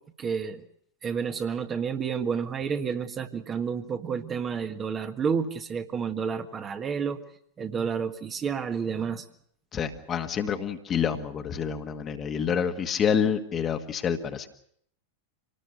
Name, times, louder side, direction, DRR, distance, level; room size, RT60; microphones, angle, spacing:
voice 1, 0.2-0.6 1.0-7.2 7.6-9.2, right 6 dB, 25° right, 6 dB, 1.6 m, -30 dB
voice 2, 9.7-14.5, left 7 dB, 25° left, 6 dB, 1.7 m, -28 dB
26.0 x 19.0 x 6.7 m, 0.67 s
figure-of-eight pair, 90°, 0 cm